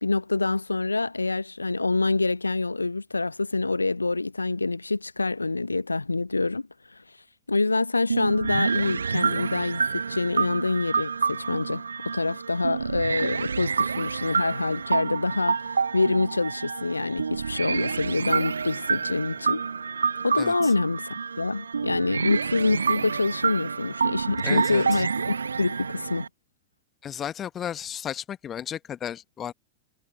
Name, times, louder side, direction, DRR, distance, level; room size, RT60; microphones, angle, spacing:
voice 1, 0.0-7.0 7.5-19.6 20.2-26.3, left 3 dB, 80° left, 0.8 m, -26 dB
sound 1, 8.1-26.3, right 5 dB, 75° right, 0.6 m, -28 dB
voice 2, 20.4-20.7 24.4-24.8 27.0-29.5, left 9 dB, 25° left, 1.1 m, -34 dB
figure-of-eight pair, 90°, 0 cm